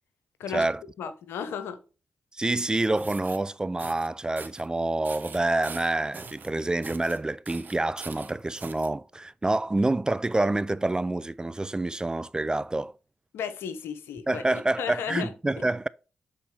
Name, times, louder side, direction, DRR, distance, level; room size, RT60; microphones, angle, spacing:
voice 1, 1.0-1.8 13.3-15.3, left 7 dB, 75° left, 0.9 m, -34 dB
voice 2, 2.4-12.9 14.3-15.9, right 2 dB, 20° right, 0.3 m, -27 dB
sound 1, 2.8-3.4 3.8-4.1 4.4-4.7 5.0-6.5 6.8-7.2 7.4-8.9, right 5 dB, 50° right, 1.1 m, -43 dB
7.8 x 4.2 x 3.3 m
hypercardioid pair, 40°, 4 cm